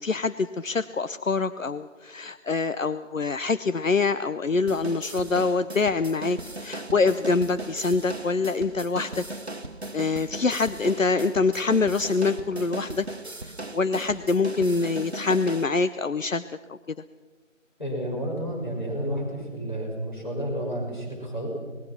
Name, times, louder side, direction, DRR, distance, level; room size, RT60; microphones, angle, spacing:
voice 1, 0.0-9.2 9.9-13.1 13.4-16.4 16.7-16.8, left 4 dB, 75° left, 12 dB, 0.8 m, -25 dB
sound 1, 4.7-15.6, right 2 dB, 55° right, 1.3 m, -38 dB
voice 2, 17.8-21.5, right 1 dB, 35° left, -1 dB, 6.1 m, -31 dB
26.0 x 19.5 x 6.0 m, 1.3 s
figure-of-eight pair, 175°, 39 cm